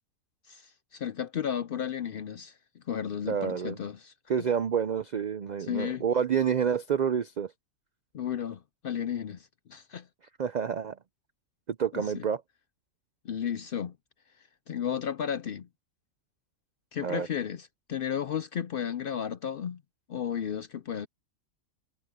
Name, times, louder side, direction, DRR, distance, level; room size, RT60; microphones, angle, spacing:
voice 1, 0.5-4.1 5.6-6.0 8.1-10.1 11.9-12.2 13.2-14.0 14.7-15.7 16.9-19.8 20.1-21.1, left 8 dB, 60° left, 0.6 m, -33 dB
voice 2, 3.3-3.8 4.3-7.5 10.4-11.0 11.7-12.4 17.0-17.3, right 7 dB, 80° right, 0.4 m, -28 dB
omnidirectional pair, 1.4 m